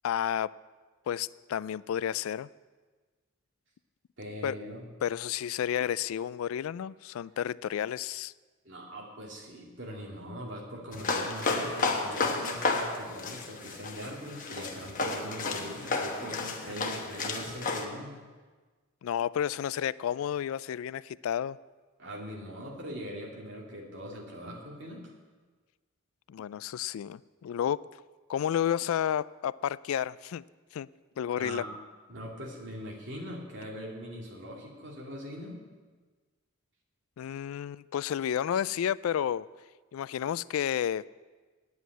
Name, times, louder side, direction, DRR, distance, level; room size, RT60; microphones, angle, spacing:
voice 1, 0.0-0.5 1.1-2.5 4.4-4.5 5.0-8.3 19.0-21.6 26.3-27.8 28.3-30.4 30.7-30.9 31.2-31.6 37.2-39.5 39.9-41.0, left 9 dB, 85° left, 20 dB, 0.3 m, -31 dB
voice 2, 4.2-4.8 8.6-18.2 22.0-25.1 31.3-31.7 32.1-35.6, equal, 60° right, -1 dB, 2.6 m, -41 dB
sound 1, 10.9-17.8, left 3 dB, 40° left, 1.2 m, -32 dB
9.5 x 8.3 x 9.1 m, 1.4 s
head